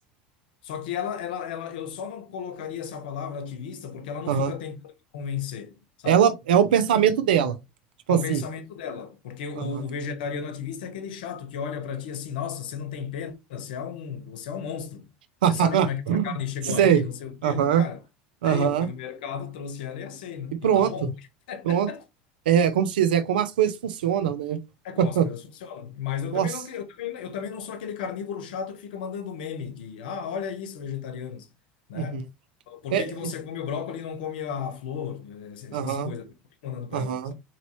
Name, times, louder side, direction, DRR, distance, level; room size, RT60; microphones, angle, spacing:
voice 1, 0.6-6.2 8.1-15.1 15.5-18.0 18.4-21.1 21.5-22.0 24.8-31.5 31.9-32.2 32.7-36.2 36.6-37.3, left 7 dB, 80° left, 0.9 m, -34 dB
voice 2, 6.1-7.5 8.1-8.4 9.6-9.7 15.4-16.3 16.7-17.0 17.4-17.8 18.4-18.9 20.6-20.9 21.6-21.9 22.5-24.6 25.0-25.3 26.3-26.5 31.9-32.2 32.9-33.0 35.7-36.1 36.9-37.3, right 8 dB, 85° right, 0.6 m, -22 dB
4.1 x 3.0 x 3.0 m
hypercardioid pair, 95°, 5 cm